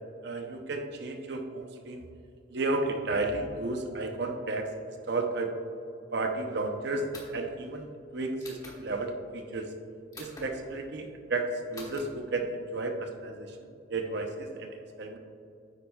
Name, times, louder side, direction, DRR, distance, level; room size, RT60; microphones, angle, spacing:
voice 1, 0.2-2.0 2.5-5.5 6.1-9.7 10.2-15.2, right 2 dB, 55° right, 4 dB, 0.7 m, -33 dB
sound 1, 7.1-7.5 8.4-8.8 10.1-10.5 11.7-12.0, left 2 dB, 20° left, 1.2 m, -45 dB
9.9 x 8.7 x 2.3 m, 2.5 s
head